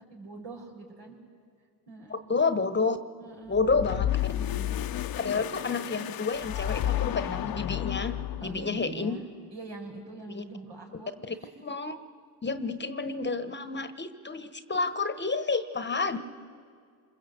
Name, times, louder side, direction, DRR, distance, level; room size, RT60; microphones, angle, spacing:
voice 1, 0.1-1.2 1.9-2.2 3.2-4.0 4.3-4.7 8.4-9.2 9.5-11.1 11.4-11.5 14.7-14.9 16.1-16.2, right 3 dB, 75° right, -1 dB, 5.9 m, -43 dB
voice 2, 2.1-3.0 3.5-4.1 5.1-9.2 10.3-10.4 11.3-11.4 11.6-12.0 12.4-16.2, left 4 dB, 25° left, 11 dB, 1.1 m, -29 dB
sound 1, 3.5-8.8, left 12 dB, 55° left, 0.8 m, -31 dB
28.5 x 21.0 x 8.0 m, 2.1 s
supercardioid pair, 70°, 43 cm